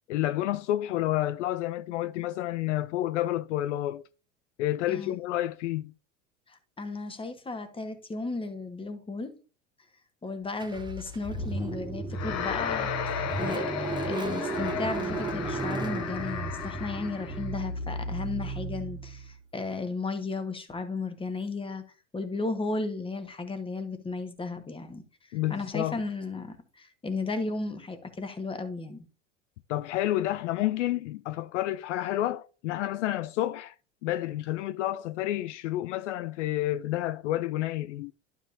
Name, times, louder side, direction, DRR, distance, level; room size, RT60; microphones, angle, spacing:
voice 1, 0.1-4.0 4.6-5.9 25.3-26.0 29.7-33.7 34.0-38.1, left 14 dB, 70° left, 0.5 m, -29 dB
voice 2, 4.9-5.2 6.5-9.3 10.2-21.8 22.1-25.0 25.3-29.1, left 3 dB, 15° left, 1.4 m, -34 dB
Car / Engine starting, 10.6-19.4, right 2 dB, 10° right, 1.1 m, -34 dB
sound 1, 12.1-17.5, left 8 dB, 45° left, 1.2 m, -34 dB
11.5 x 5.6 x 2.7 m
hypercardioid pair, 80°, 37 cm